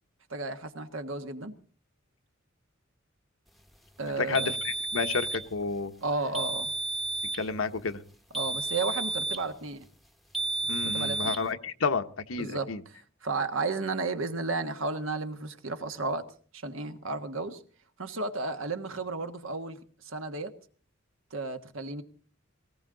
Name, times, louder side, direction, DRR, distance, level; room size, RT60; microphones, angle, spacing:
voice 1, 0.3-1.5 4.0-4.5 6.0-6.7 8.3-9.9 10.8-11.4 12.4-16.3 16.5-17.6 18.0-20.5 21.3-22.0, right 3 dB, 75° right, 1.4 m, -33 dB
voice 2, 4.2-5.9 7.3-8.0 10.7-12.8, left 4 dB, 80° left, 1.0 m, -31 dB
sound 1, 4.3-5.5 6.3-7.5 8.3-9.5 10.3-11.5, right 3 dB, ahead, 0.9 m, -32 dB
18.5 x 17.0 x 3.9 m
head